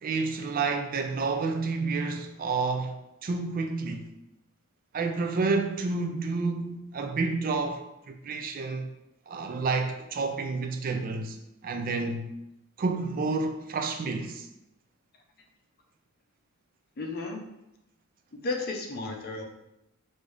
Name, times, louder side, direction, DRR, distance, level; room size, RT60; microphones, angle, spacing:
voice 1, 0.0-3.0 3.2-4.1 4.9-8.9 9.3-11.4 11.6-12.3 12.8-14.5, right 4 dB, 40° right, 0.4 m, -29 dB
voice 2, 17.0-17.4 18.4-19.5, left 3 dB, 45° left, 0.6 m, -33 dB
4.9 x 2.6 x 3.3 m
head